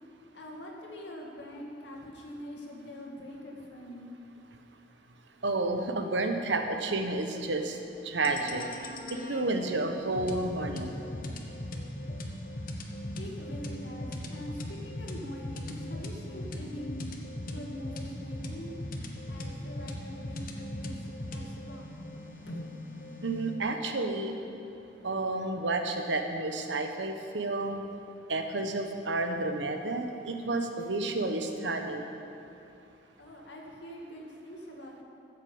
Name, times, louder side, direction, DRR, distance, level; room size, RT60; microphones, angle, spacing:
voice 1, 0.3-4.2 13.2-17.0 17.4-18.7 19.3-21.9 22.5-22.7 33.2-35.0, equal, 75° left, -1 dB, 2.2 m, -44 dB
voice 2, 5.4-7.8 8.0-8.6 9.1-10.9 23.2-24.3 25.0-27.8 28.3-32.1, right 2 dB, 80° right, 5 dB, 1.1 m, -31 dB
sound 1, 8.2-23.6, left 1 dB, 50° left, 1.1 m, -39 dB
13.0 x 8.2 x 7.1 m, 2.9 s
head